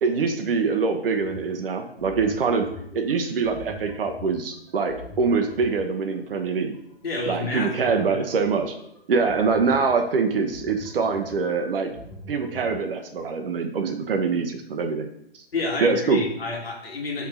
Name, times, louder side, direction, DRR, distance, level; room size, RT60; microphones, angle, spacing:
voice 1, 0.0-2.7 2.9-6.8 7.3-8.8 9.1-11.9 12.3-15.1 15.8-16.2, right 5 dB, 65° right, 5 dB, 0.8 m, -24 dB
sound 1, 1.2-12.8, left 1 dB, 10° left, 1.1 m, -43 dB
voice 2, 7.0-8.3 15.5-17.3, left 3 dB, 65° left, -1 dB, 2.0 m, -29 dB
4.8 x 3.5 x 5.5 m, 0.73 s
figure-of-eight pair, 135°, 31 cm